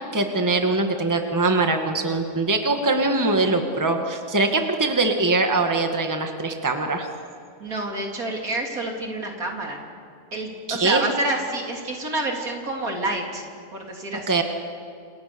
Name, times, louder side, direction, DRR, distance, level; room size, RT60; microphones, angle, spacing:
voice 1, 0.1-7.1 10.7-11.0 14.3-14.4, right 3 dB, 10° right, 4 dB, 1.9 m, -22 dB
voice 2, 7.6-9.8 10.3-13.5 13.7-14.4, right 2 dB, 65° right, 1 dB, 3.9 m, -28 dB
28.5 x 28.0 x 7.0 m, 2.3 s
omnidirectional pair, 1.6 m